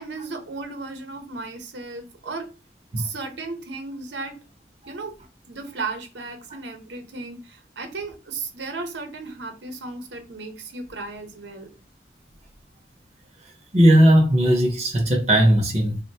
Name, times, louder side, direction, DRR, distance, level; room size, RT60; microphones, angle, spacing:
voice 1, 0.0-2.5 3.0-4.4 4.9-5.1 5.5-11.7, right 3 dB, 85° right, 0.8 m, -35 dB
voice 2, 13.7-16.0, equal, 40° right, 0.6 m, -17 dB
3.6 x 2.2 x 2.7 m
head